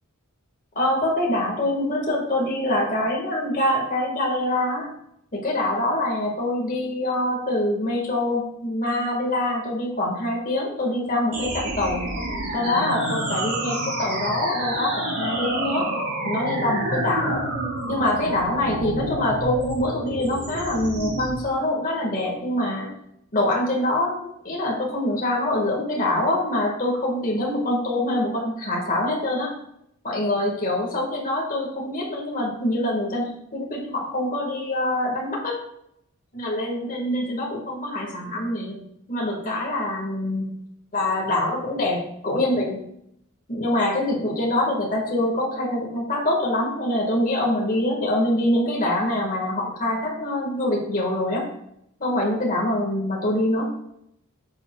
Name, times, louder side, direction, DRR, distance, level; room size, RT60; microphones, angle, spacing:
voice 1, 0.8-4.8 5.3-12.1 12.5-15.9 16.2-17.4 17.9-22.9 23.3-29.5 30.0-35.6 36.3-38.8 39.1-40.5 40.9-42.8 43.5-51.5 52.0-53.7, left 1 dB, 40° left, -2 dB, 1.7 m, -25 dB
sound 1, 11.3-21.3, right 1 dB, 90° right, 3.4 m, -29 dB
11.5 x 7.0 x 2.3 m, 0.75 s
head